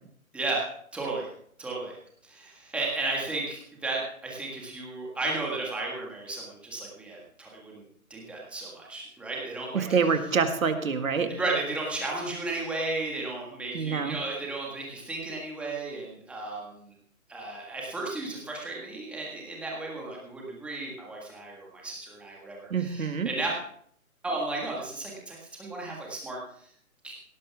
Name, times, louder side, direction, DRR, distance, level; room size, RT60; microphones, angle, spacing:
voice 1, 0.9-1.3 1.6-1.9 2.2-7.8 8.1-9.9 11.3-16.8 17.3-23.6 24.2-26.4 27.0-27.1, right 2 dB, 5° right, -3 dB, 1.7 m, -34 dB
voice 2, 9.7-11.3 13.7-14.2 22.7-23.3, right 5 dB, 70° right, 7 dB, 2.0 m, -26 dB
17.5 x 11.5 x 3.6 m, 0.64 s
hypercardioid pair, 160°, 43 cm